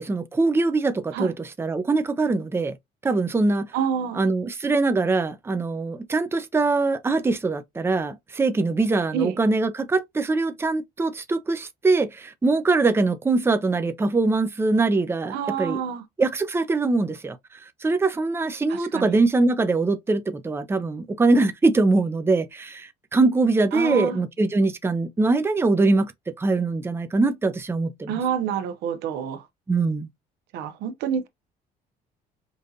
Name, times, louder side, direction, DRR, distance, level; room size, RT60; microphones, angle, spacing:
voice 1, 0.0-1.3 1.6-2.8 3.0-3.7 4.1-15.8 16.2-17.4 17.8-26.1 26.4-28.2 29.7-30.1, right 3 dB, 15° right, 0.6 m, -22 dB
voice 2, 3.7-4.2 9.1-9.4 15.3-16.0 18.7-19.2 23.7-24.2 28.1-29.5 30.5-31.3, right 7 dB, 90° right, 0.9 m, -28 dB
5.2 x 2.4 x 2.7 m
cardioid pair, 110°, 17 cm